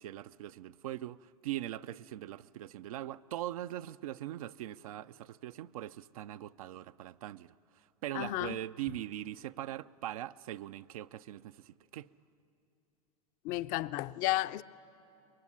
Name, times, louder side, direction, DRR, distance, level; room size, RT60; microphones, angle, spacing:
voice 1, 0.0-7.5 8.0-12.1, right 13 dB, 75° right, 0.5 m, -41 dB
voice 2, 8.1-8.6 13.4-14.6, left 16 dB, 45° left, 0.6 m, -32 dB
23.0 x 21.5 x 9.8 m
hypercardioid pair, 105°, 19 cm